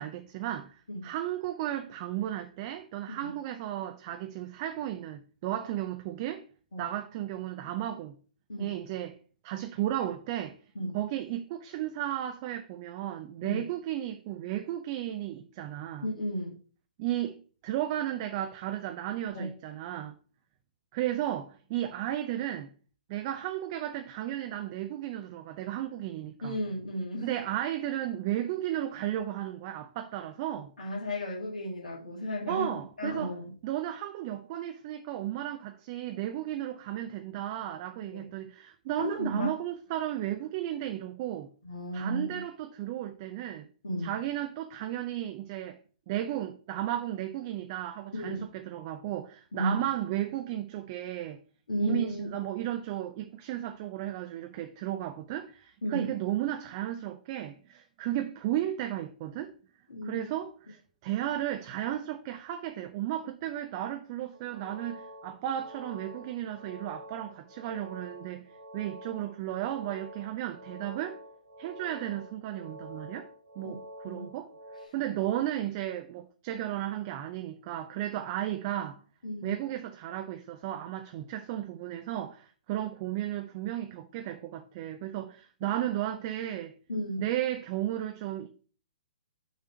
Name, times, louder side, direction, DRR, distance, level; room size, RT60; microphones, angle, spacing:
voice 1, 0.0-6.5 6.8-8.1 8.6-9.2 9.4-10.6 10.9-16.1 17.0-20.1 20.9-22.7 23.1-26.6 27.2-30.7 32.5-33.4 33.6-41.5 41.9-43.7 44.0-45.8 46.1-51.4 51.8-59.5 60.0-71.2 71.6-73.3 73.6-74.5 74.9-79.0 79.4-86.8 87.2-88.5, right 12 dB, 35° right, 0.5 m, -34 dB
voice 2, 16.0-16.6 19.3-19.5 26.4-27.3 30.8-33.5 38.1-38.2 39.0-39.5 41.6-42.4 43.8-44.1 48.1-48.5 49.5-49.8 51.7-52.4 55.8-56.1 59.9-60.3 73.6-73.8 74.1-74.2 79.2-79.5 86.9-87.2, left 1 dB, 65° left, 2.2 m, -34 dB
sound 1, 64.3-74.9, equal, 75° right, 1.8 m, -47 dB
6.4 x 3.4 x 5.6 m
figure-of-eight pair, 120°, 4 cm